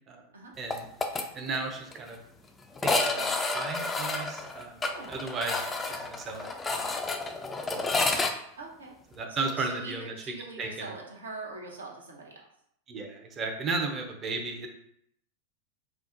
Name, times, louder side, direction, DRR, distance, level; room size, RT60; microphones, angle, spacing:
sound 1, 0.7-1.2 1.5-1.6 1.9-2.0 2.8-8.3, left 3 dB, 15° left, 0.3 m, -30 dB
voice 1, 1.3-2.2 2.8-6.9 7.7-7.9 9.2-10.1 10.6-10.7 12.9-14.7, right 3 dB, 30° right, 3 dB, 0.6 m, -35 dB
voice 2, 8.6-8.9 9.3-12.4, right 3 dB, 75° right, -1 dB, 0.7 m, -42 dB
4.4 x 2.0 x 2.5 m, 0.71 s
figure-of-eight pair, 90°, 0 cm